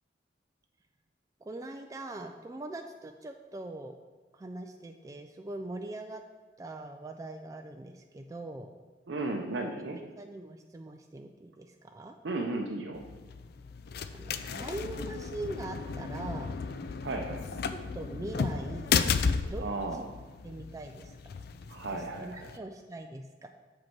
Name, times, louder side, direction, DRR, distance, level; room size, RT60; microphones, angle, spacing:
voice 1, 1.4-4.0 4.3-6.2 6.6-8.7 9.9-12.2 14.1-16.6 17.9-19.0 19.5-19.6 19.9-20.1 20.4-21.4 21.9-23.5, right 2 dB, 20° right, 4 dB, 0.3 m, -42 dB
voice 2, 9.1-10.0 12.2-13.0 17.0-17.6 19.6-20.0 21.7-22.6, right 2 dB, 75° right, 1 dB, 0.6 m, -35 dB
sound 1, 12.9-22.6, left 5 dB, 60° left, 0.3 m, -34 dB
7.1 x 5.2 x 4.5 m, 1.3 s
head